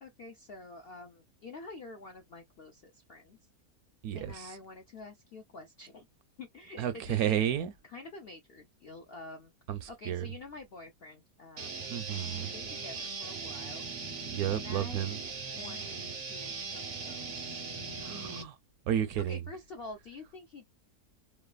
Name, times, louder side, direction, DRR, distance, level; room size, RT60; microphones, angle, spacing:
voice 1, 0.0-3.4 4.1-6.1 6.4-7.3 7.8-9.5 9.9-13.9 14.5-15.3 15.5-17.7 19.3-20.7, left 3 dB, 65° left, 0.6 m, -48 dB
voice 2, 4.0-4.5 6.8-7.7 9.7-10.3 11.9-12.5 14.3-15.2 18.0-18.6 18.9-19.4, right 10 dB, 70° right, 1.0 m, -32 dB
sound 1, 11.6-18.4, right 4 dB, 50° right, 0.5 m, -39 dB
3.1 x 2.1 x 2.3 m
omnidirectional pair, 1.7 m